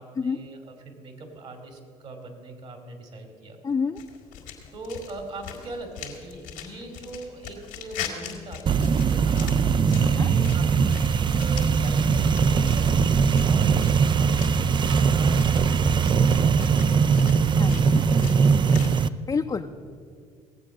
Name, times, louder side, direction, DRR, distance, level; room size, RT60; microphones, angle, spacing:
voice 1, 0.0-3.6 4.7-9.6 10.0-17.3, right 2 dB, 50° right, 4 dB, 2.5 m, -41 dB
voice 2, 3.6-4.0 9.9-10.3 17.6-18.0 18.8-19.7, left 5 dB, 25° left, 3 dB, 0.6 m, -29 dB
sound 1, 4.0-18.9, left 9 dB, 85° left, 1.8 m, -42 dB
sound 2, 8.7-19.1, right 6 dB, 35° right, 0.4 m, -21 dB
18.0 x 7.6 x 6.1 m, 2.1 s
supercardioid pair, 80°, 14 cm